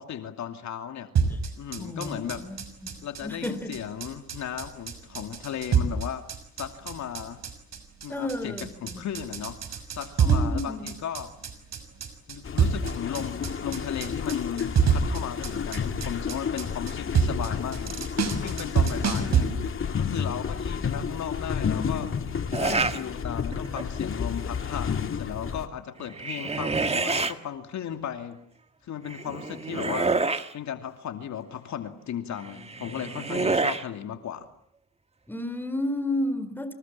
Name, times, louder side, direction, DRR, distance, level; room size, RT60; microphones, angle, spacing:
voice 1, 0.0-1.1 1.6-2.5 3.0-6.2 6.6-7.4 8.0-11.3 12.3-19.5 20.0-22.1 22.6-28.4 28.8-30.2 30.5-34.5, left 9 dB, 70° left, 2.7 m, -36 dB
sound 1, 1.2-19.4, right 6 dB, 60° right, 6.2 m, -27 dB
voice 2, 1.8-2.9 3.2-3.7 8.1-9.0 10.2-10.9 19.3-19.5 22.7-22.9 35.3-36.7, left 1 dB, 5° left, 4.1 m, -32 dB
sound 2, 12.4-25.7, left 6 dB, 45° left, 2.5 m, -31 dB
sound 3, 22.5-23.0 23.5-24.0 26.0-27.3 29.1-30.5 32.5-33.8, right 3 dB, 20° right, 1.8 m, -28 dB
28.5 x 26.5 x 7.5 m
cardioid pair, 90°, 30 cm